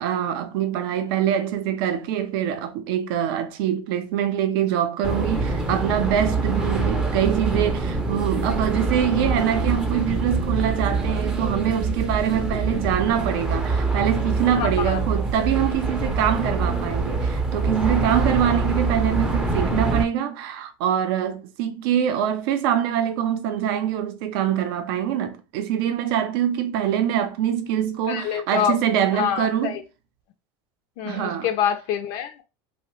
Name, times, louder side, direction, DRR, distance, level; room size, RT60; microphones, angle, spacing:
voice 1, 0.0-29.8 31.0-31.5, right 10 dB, 75° right, 0.5 m, -24 dB
sound 1, 5.0-20.0, right 3 dB, 5° right, 0.4 m, -25 dB
voice 2, 14.6-15.0 28.1-28.8 29.2-29.8 31.0-32.4, left 9 dB, 65° left, 0.4 m, -26 dB
2.7 x 2.0 x 3.0 m
supercardioid pair, 135°, 12 cm